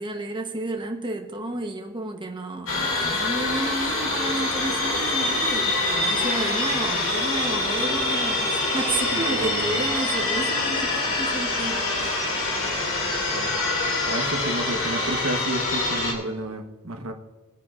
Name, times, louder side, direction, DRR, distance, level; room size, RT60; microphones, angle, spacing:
voice 1, 0.0-12.4, right 2 dB, 20° right, 2 dB, 1.0 m, -31 dB
sound 1, 2.7-16.1, left 2 dB, 65° left, 2.4 m, -25 dB
voice 2, 9.1-9.8 13.3-13.6 14.0-17.1, right 2 dB, 65° right, 4 dB, 1.1 m, -31 dB
20.0 x 9.3 x 2.5 m, 1.3 s
head